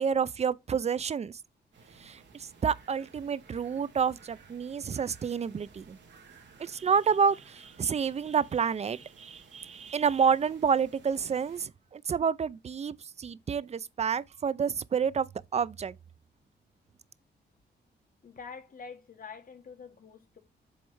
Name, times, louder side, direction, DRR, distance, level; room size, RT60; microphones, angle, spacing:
voice 1, 0.0-1.4 2.0-6.0 6.6-15.3 15.5-15.9, right 6 dB, 35° right, 0.4 m, -29 dB
sound 1, 1.7-11.6, right 4 dB, 80° right, 2.5 m, -56 dB
voice 2, 18.2-20.4, left 5 dB, 50° left, 1.6 m, -46 dB
7.9 x 3.2 x 4.6 m
cardioid pair, 105°, 18 cm